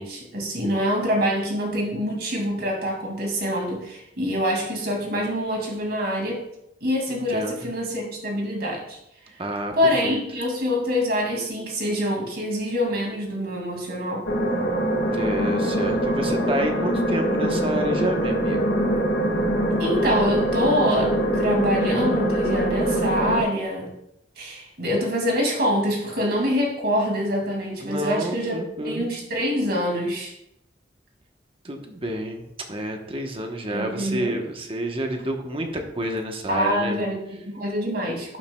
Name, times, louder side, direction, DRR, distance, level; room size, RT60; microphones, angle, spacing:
voice 1, 0.0-6.4 6.8-9.0 9.8-14.3 19.8-23.9 24.4-28.6 28.8-30.3 33.7-34.4 36.5-38.4, equal, 60° right, 0 dB, 2.4 m, -25 dB
voice 2, 7.1-7.7 9.4-9.7 10.0-10.2 15.1-18.6 27.8-29.1 31.6-37.1, right 1 dB, 30° right, 3 dB, 1.1 m, -29 dB
sound 1, 14.3-23.4, right 1 dB, 75° left, 1.6 m, -23 dB
11.5 x 7.4 x 2.3 m, 0.79 s
head